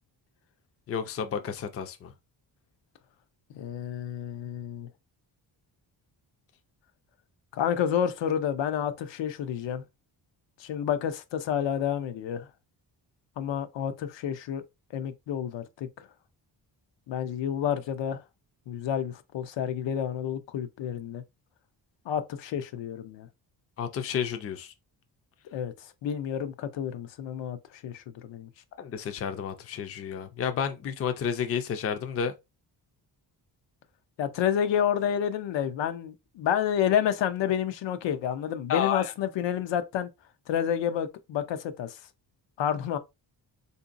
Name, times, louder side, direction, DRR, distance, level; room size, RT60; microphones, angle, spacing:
voice 1, 0.9-2.1 23.8-24.7 28.8-32.3 38.7-39.1, left 7 dB, 35° left, 0.4 m, -31 dB
voice 2, 3.5-4.9 7.5-9.8 10.6-12.5 13.4-14.6 14.9-16.1 17.1-18.2 18.7-21.2 22.1-23.3 25.5-28.5 34.2-40.1 40.5-42.0 42.6-43.0, left 9 dB, 90° left, 0.6 m, -29 dB
3.7 x 2.6 x 2.5 m
wide cardioid pair, 160°, 43 cm